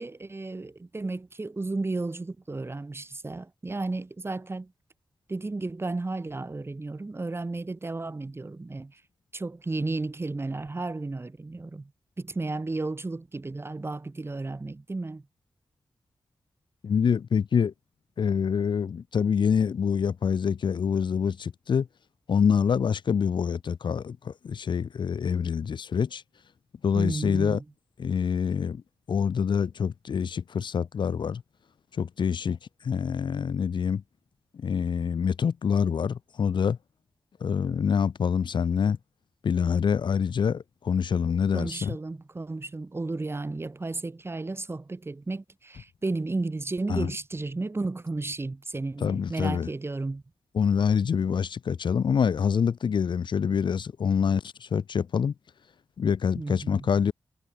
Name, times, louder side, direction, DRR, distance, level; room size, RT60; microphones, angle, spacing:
voice 1, 0.0-4.7 5.3-9.0 9.3-11.9 12.2-15.2 26.9-27.6 41.5-50.2 56.3-56.9, right 3 dB, 30° right, 4.0 m, -33 dB
voice 2, 16.8-17.7 18.2-21.9 22.3-26.2 26.8-27.6 28.0-28.8 29.1-31.4 32.0-32.6 32.8-34.0 34.6-36.8 37.4-39.0 39.4-41.9 46.9-47.1 49.0-49.7 50.5-55.3 56.0-57.1, left 7 dB, 80° left, 3.3 m, -26 dB
cardioid pair, 75°, 8 cm